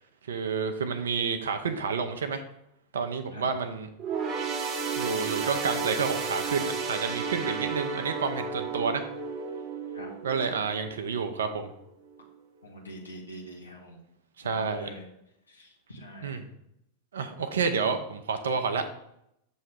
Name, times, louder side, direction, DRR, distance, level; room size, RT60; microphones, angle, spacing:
voice 1, 0.3-2.4 2.9-3.9 5.0-9.0 10.2-11.7 14.4-14.9 16.2-16.5 17.1-18.8, right 5 dB, 65° right, 7 dB, 0.5 m, -29 dB
sound 1, 4.0-11.7 12.1-12.3 13.2-13.3, right 5 dB, 30° right, 0.8 m, -33 dB
voice 2, 12.6-14.0 14.4-15.0 15.5-16.4, equal, 80° left, -2 dB, 1.2 m, -44 dB
6.5 x 3.1 x 5.8 m, 0.80 s
figure-of-eight pair, 90°, 0 cm